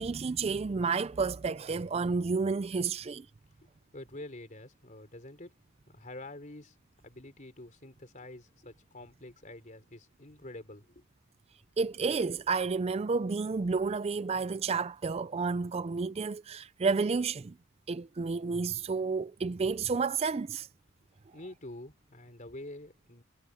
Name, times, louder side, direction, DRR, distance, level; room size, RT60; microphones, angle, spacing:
voice 1, 0.0-3.3 11.8-17.5 17.9-20.7, right 4 dB, 30° right, 0.3 m, -31 dB
voice 2, 3.9-5.5 5.9-6.8 7.0-11.0 21.3-23.2, left 1 dB, 35° left, 3.7 m, -47 dB
head